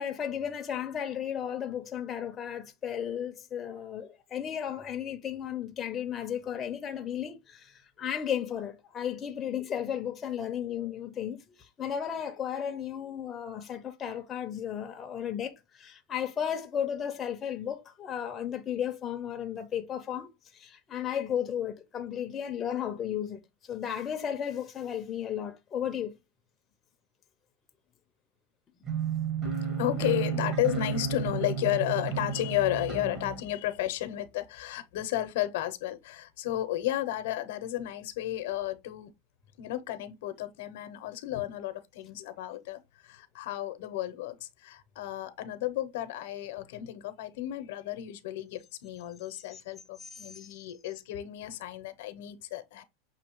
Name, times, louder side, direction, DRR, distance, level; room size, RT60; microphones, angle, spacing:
voice 1, 0.0-26.1 49.3-49.6 50.0-50.5, left 9 dB, 20° left, 0.6 m, -34 dB
sound 1, 28.8-33.4, right 7 dB, 30° right, 1.1 m, -32 dB
voice 2, 29.4-39.1 39.6-52.8, left 14 dB, 65° left, 0.8 m, -33 dB
6.3 x 2.7 x 3.0 m
supercardioid pair, 160°, 0 cm